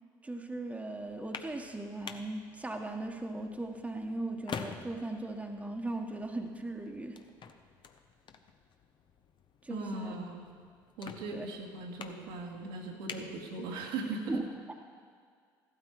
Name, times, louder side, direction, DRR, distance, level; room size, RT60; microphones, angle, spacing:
voice 1, 0.2-7.2 9.6-10.2 11.3-11.5 14.3-14.4, right 2 dB, 10° right, 3 dB, 1.4 m, -38 dB
sound 1, 1.0-14.1, left 6 dB, 45° left, 1.0 m, -49 dB
voice 2, 9.7-10.4 11.0-14.3, right 3 dB, 80° right, -1 dB, 2.1 m, -39 dB
15.0 x 12.5 x 4.6 m, 2.1 s
hypercardioid pair, 65°, 11 cm